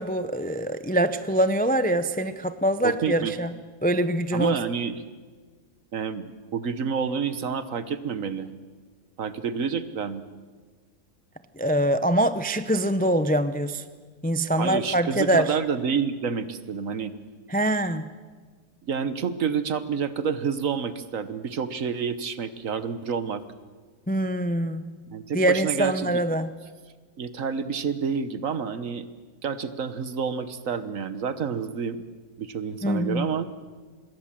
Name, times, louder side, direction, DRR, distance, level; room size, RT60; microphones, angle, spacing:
voice 1, 0.0-3.5 3.8-4.6 11.6-13.8 14.2-15.6 17.5-18.1 24.1-25.0 25.3-26.5 32.8-33.3, right 1 dB, 10° left, 11 dB, 0.4 m, -24 dB
voice 2, 2.8-3.3 4.3-5.0 5.9-6.2 6.5-8.5 9.2-10.2 14.6-17.1 18.9-23.4 25.1-26.2 27.2-29.1 29.4-32.0 32.4-33.5, right 6 dB, 60° right, 12 dB, 1.4 m, -29 dB
26.0 x 21.5 x 7.5 m, 1.5 s
omnidirectional pair, 1.6 m